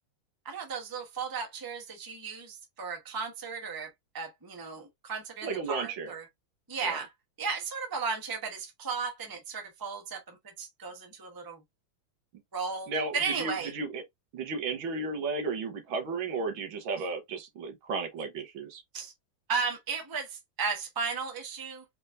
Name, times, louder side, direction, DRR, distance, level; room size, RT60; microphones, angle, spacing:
voice 1, 0.4-6.3 6.7-7.1 7.4-11.6 12.5-13.7 18.9-19.1 19.5-21.8, right 5 dB, 15° right, 0.7 m, -35 dB
voice 2, 5.4-6.1 6.8-7.0 12.9-14.0 14.3-18.8, right 4 dB, 80° right, 1.8 m, -34 dB
4.4 x 3.4 x 2.6 m
omnidirectional pair, 2.2 m